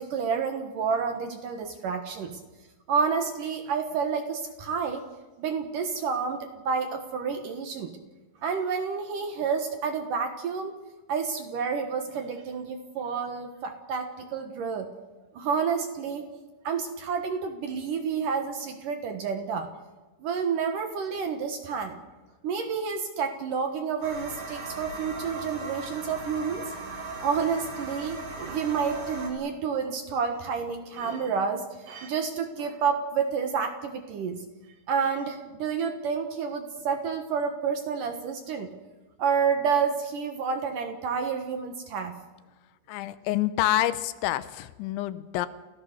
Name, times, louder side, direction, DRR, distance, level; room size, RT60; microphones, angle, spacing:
voice 1, 0.0-2.4 2.9-5.0 5.4-7.9 8.4-10.8 11.1-14.9 15.3-16.2 16.6-19.7 20.2-22.0 22.4-26.6 27.2-34.4 34.9-38.7 39.2-42.1, right 6 dB, 75° right, 6 dB, 2.0 m, -29 dB
sound 1, 24.0-29.3, right 2 dB, 45° right, 6.0 m, -38 dB
voice 2, 42.9-45.5, left 14 dB, 80° left, 14 dB, 3.0 m, -27 dB
29.5 x 16.5 x 6.7 m, 1.2 s
omnidirectional pair, 5.8 m